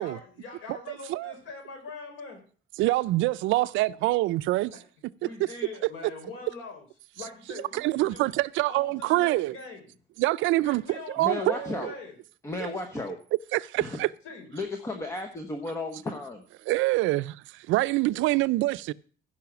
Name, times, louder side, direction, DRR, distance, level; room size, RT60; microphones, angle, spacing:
voice 1, 0.0-2.4 4.7-4.8 5.2-6.8 7.1-8.3 8.7-9.8 10.6-12.2 14.2-14.5 18.1-18.4, left 3 dB, 75° left, 4.4 m, -43 dB
voice 2, 2.8-4.7 5.2-5.3 7.7-9.6 10.2-11.9 13.5-14.1 16.7-18.9, right 18 dB, 75° right, 0.5 m, -25 dB
voice 3, 11.2-11.9 12.4-13.2 13.8-14.0 14.5-16.4, left 2 dB, 15° left, 1.0 m, -34 dB
15.5 x 5.6 x 5.9 m
cardioid pair, 170°, 20 cm